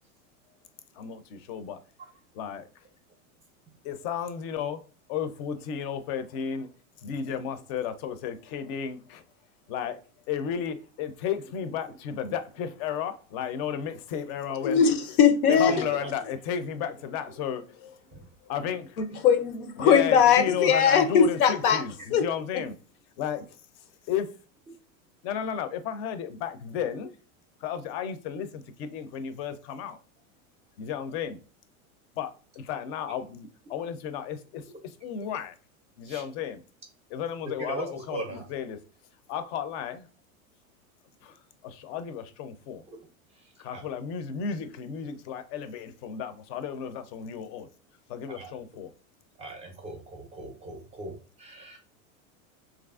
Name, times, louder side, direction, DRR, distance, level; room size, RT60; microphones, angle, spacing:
voice 1, 0.9-1.8 2.3-2.7 3.8-4.8 5.1-6.7 7.0-9.2 9.7-10.0 10.3-14.9 15.6-19.0 19.8-22.8 23.2-23.4 24.1-24.3 25.2-27.1 27.6-30.0 30.8-31.4 32.2-35.5 36.0-36.6 37.1-38.8 39.3-40.1 41.2-42.8 43.6-47.7 48.1-48.9, left 8 dB, 50° left, 0.5 m, -33 dB
voice 2, 14.6-15.8 19.2-21.8 22.1-22.2, left 7 dB, 90° left, 0.6 m, -20 dB
voice 3, 15.5-16.1 18.1-18.2 36.1-36.2 37.6-38.4 43.7-43.8 48.4-48.8 49.4-51.8, right 2 dB, 15° right, 0.4 m, -38 dB
3.0 x 2.4 x 2.3 m
supercardioid pair, 120°, 42 cm